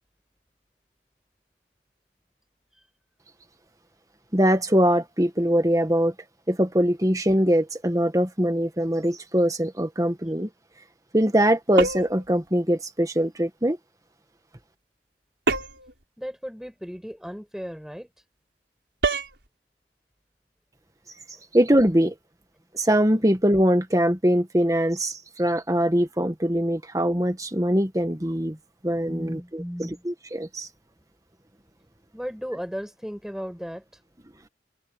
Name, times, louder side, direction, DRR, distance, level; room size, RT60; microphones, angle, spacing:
voice 1, 4.3-6.1 6.5-10.5 11.1-13.8 21.5-22.2 22.7-28.6 28.8-30.7, equal, 20° right, 1.6 m, -22 dB
sound 1, 11.8-12.3 15.5-15.9 19.0-19.4, right 3 dB, 80° right, 4.7 m, -26 dB
voice 2, 16.2-18.1 29.1-30.0 32.1-33.8, equal, 5° right, 7.6 m, -35 dB
open air
head